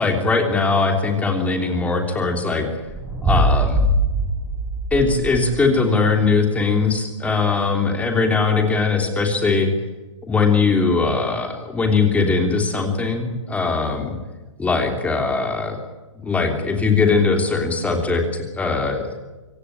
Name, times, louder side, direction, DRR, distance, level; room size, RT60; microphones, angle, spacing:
voice 1, 0.0-2.7 3.2-3.8 4.9-9.7 10.2-14.1 14.6-15.8 16.2-19.0, left 4 dB, 10° left, 4 dB, 3.2 m, -20 dB
sound 1, 2.9-5.7, right 1 dB, 10° right, 4.1 m, -21 dB
25.5 x 16.5 x 10.0 m, 1.2 s
hypercardioid pair, 150°, 16 cm